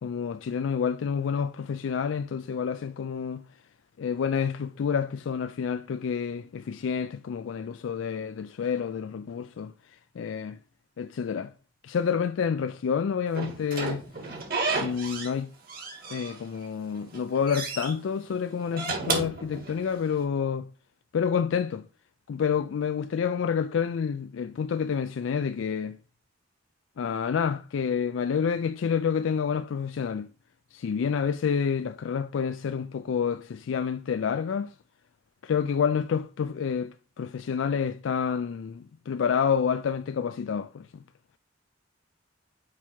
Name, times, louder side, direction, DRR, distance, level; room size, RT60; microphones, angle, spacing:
voice 1, 0.0-3.4 4.0-10.6 11.0-11.5 11.8-14.4 14.8-15.5 16.1-20.7 21.1-21.9 22.3-26.0 27.0-30.3 30.7-34.7 35.4-40.9, left 7 dB, 75° left, 0.3 m, -28 dB
Slam / Squeak, 13.3-15.4 15.7-16.7 17.0-17.9 18.6-20.1, right 3 dB, 50° right, 1.7 m, -32 dB
6.0 x 4.7 x 4.4 m
head